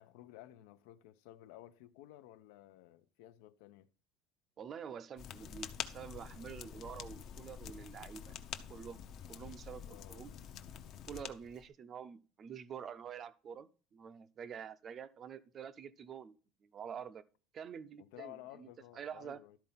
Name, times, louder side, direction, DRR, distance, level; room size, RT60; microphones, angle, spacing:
voice 1, 0.0-3.9 9.8-10.2 18.0-19.6, left 14 dB, 75° left, 0.8 m, -54 dB
voice 2, 4.6-8.3 8.7-9.0 9.3-9.8 10.1-10.3 11.1-16.3 16.6-17.2 17.5-19.4, right 7 dB, 25° right, 0.5 m, -47 dB
sound 1, 5.2-11.6, left 8 dB, 35° left, 0.7 m, -47 dB
12.5 x 4.3 x 5.7 m
cardioid pair, 175°, 0 cm